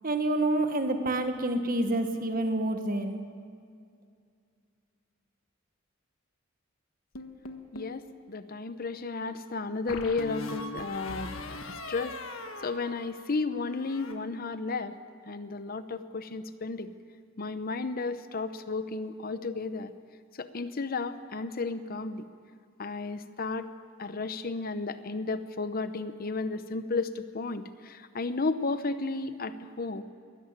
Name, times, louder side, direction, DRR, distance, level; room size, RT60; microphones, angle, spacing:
voice 1, 0.0-3.2, right 1 dB, 45° right, 7 dB, 1.5 m, -28 dB
sound 1, 7.1-8.0 9.9-13.4 13.7-14.1, left 3 dB, 75° left, 1.6 m, -40 dB
voice 2, 7.7-11.3 11.9-12.2 12.6-14.9 15.3-16.9 17.4-19.9 20.4-22.2 22.8-23.7 24.0-30.0, left 3 dB, 45° left, 11 dB, 0.8 m, -33 dB
22.0 x 13.5 x 8.9 m, 2.3 s
head